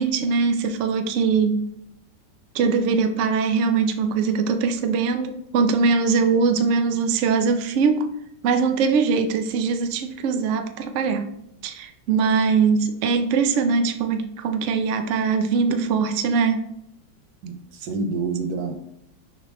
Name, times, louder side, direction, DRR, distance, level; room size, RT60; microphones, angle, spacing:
voice 1, 0.0-1.6 2.5-8.1 8.4-11.3 11.6-16.6, right 5 dB, 85° right, 7 dB, 0.6 m, -21 dB
voice 2, 17.4-18.9, right 4 dB, 65° right, 7 dB, 1.2 m, -28 dB
6.6 x 4.7 x 3.0 m, 0.77 s
omnidirectional pair, 2.0 m